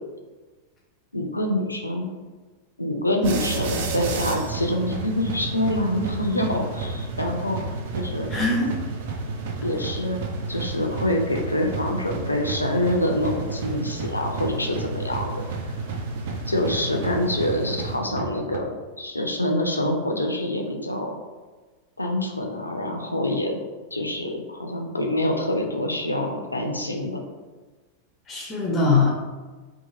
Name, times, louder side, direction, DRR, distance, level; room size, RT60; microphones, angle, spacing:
voice 1, 1.1-2.1 2.8-7.6 7.9-8.3 9.6-10.2 10.5-15.4 16.5-21.1 22.0-23.6 23.9-27.2, left 1 dB, 85° left, 2 dB, 0.4 m, -26 dB
sound 1, 3.2-18.6, right 3 dB, 55° right, 0.4 m, -31 dB
voice 2, 8.3-8.7 28.3-29.1, left 3 dB, 25° left, -3 dB, 0.5 m, -22 dB
2.8 x 2.3 x 2.6 m, 1.3 s
figure-of-eight pair, 90°, 0 cm